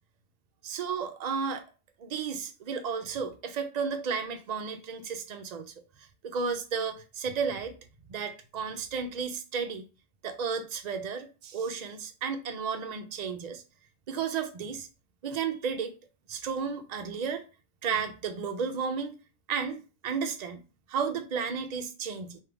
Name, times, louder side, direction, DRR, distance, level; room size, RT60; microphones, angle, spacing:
voice 1, 0.6-1.6 2.0-5.7 6.2-7.7 8.1-9.8 10.2-13.6 14.1-14.9 15.2-15.9 16.3-17.4 17.8-19.1 19.5-20.6 20.9-22.4, right 6 dB, 60° right, 0.4 m, -33 dB
3.4 x 2.7 x 4.6 m
omnidirectional pair, 1.3 m